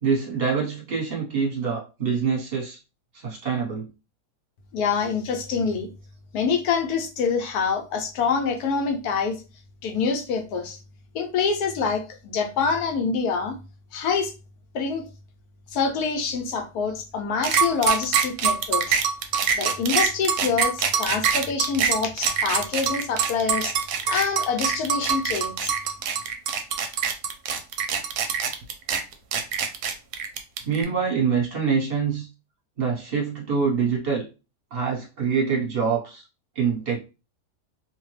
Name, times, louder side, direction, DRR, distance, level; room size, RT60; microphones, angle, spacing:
voice 1, 0.0-2.8 3.1-3.9 30.6-32.3 32.8-34.3 34.7-36.2 36.5-37.0, right 6 dB, 40° right, -3 dB, 1.1 m, -25 dB
voice 2, 4.7-5.9 6.3-9.3 9.8-10.8 11.1-13.5 13.9-14.3 14.7-15.0 15.7-19.0 19.6-23.7 24.0-25.7, left 5 dB, 70° left, 5 dB, 1.1 m, -26 dB
sound 1, 17.4-30.8, right 7 dB, 75° right, 1.0 m, -24 dB
2.7 x 2.2 x 3.1 m, 0.30 s
omnidirectional pair, 1.8 m